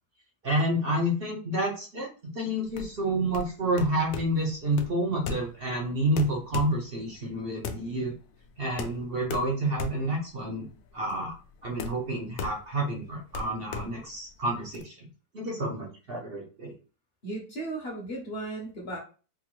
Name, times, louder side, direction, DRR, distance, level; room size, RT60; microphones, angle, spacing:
voice 1, 0.4-8.1 8.6-10.7 10.9-11.3 11.6-15.1 15.3-16.7, right 1 dB, 50° right, -1 dB, 0.8 m, -29 dB
sound 1, 2.6-14.8, left 5 dB, 75° left, 1.0 m, -39 dB
voice 2, 17.2-19.0, right 2 dB, 45° left, -1 dB, 0.9 m, -35 dB
3.6 x 2.6 x 3.0 m, 0.36 s
omnidirectional pair, 1.8 m